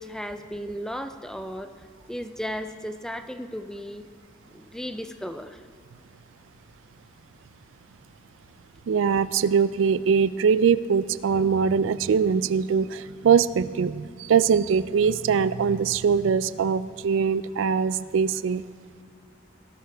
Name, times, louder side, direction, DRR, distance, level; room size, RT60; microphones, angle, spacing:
voice 1, 0.0-1.7 2.1-4.1 4.5-5.6, equal, 5° left, 8 dB, 0.4 m, -35 dB
voice 2, 8.9-18.6, right 6 dB, 75° right, 16 dB, 0.3 m, -22 dB
17.5 x 13.0 x 3.4 m, 2.1 s
head